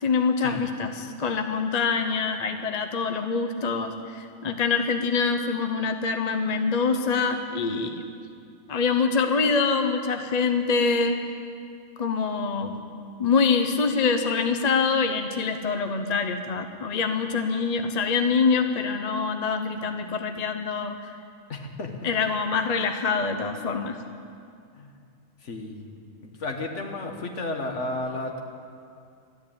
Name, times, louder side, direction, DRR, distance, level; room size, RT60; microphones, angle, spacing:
voice 1, 0.0-7.9 8.7-11.2 12.0-12.7 13.2-21.0 22.0-23.9, left 5 dB, 35° left, 6 dB, 0.7 m, -25 dB
voice 2, 21.5-22.0 24.8-25.0 25.4-25.9 26.2-28.4, left 2 dB, 60° left, 3 dB, 1.7 m, -33 dB
13.5 x 10.5 x 8.7 m, 2.4 s
omnidirectional pair, 1.4 m